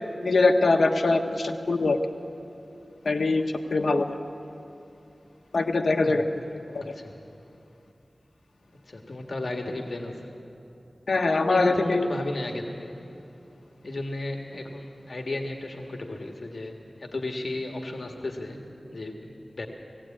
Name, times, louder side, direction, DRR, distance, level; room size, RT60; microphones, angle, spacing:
voice 1, 0.2-2.0 3.0-4.2 5.5-6.8 11.1-12.1, left 3 dB, 80° left, 3 dB, 1.1 m, -23 dB
voice 2, 6.8-7.2 8.9-10.4 11.4-13.0 13.8-16.7 17.0-18.6 18.9-19.7, left 2 dB, 65° left, 2 dB, 1.7 m, -34 dB
18.5 x 17.0 x 8.6 m, 2.8 s
wide cardioid pair, 65°, 0 cm